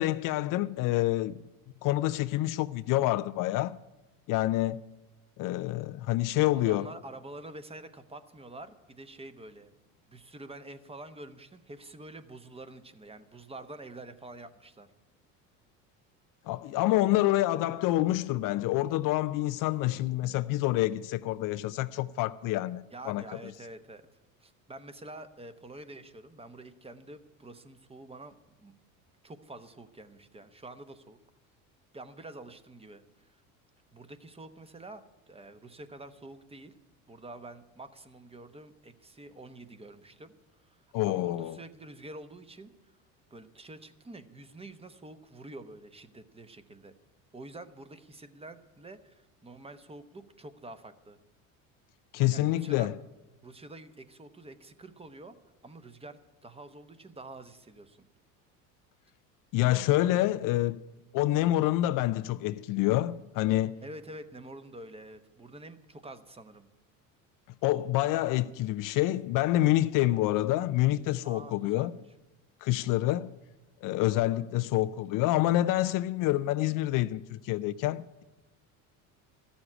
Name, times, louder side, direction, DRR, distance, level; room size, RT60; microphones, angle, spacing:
voice 1, 0.0-1.4 1.8-3.8 4.3-4.8 5.4-6.9 16.5-23.2 40.9-41.6 52.1-52.9 59.5-60.8 61.1-63.8 67.6-71.9 72.6-73.3 73.8-78.2, left 15 dB, 50° left, 0.5 m, -27 dB
voice 2, 6.7-9.7 10.1-14.9 22.9-24.0 24.4-28.7 29.2-31.2 31.9-33.4 33.9-36.7 37.1-42.7 43.3-46.9 47.3-51.2 52.3-52.9 53.4-55.4 55.6-58.1 63.8-66.7 71.2-72.0, right 2 dB, 15° right, 0.9 m, -47 dB
13.0 x 7.2 x 9.9 m
supercardioid pair, 90°, 41 cm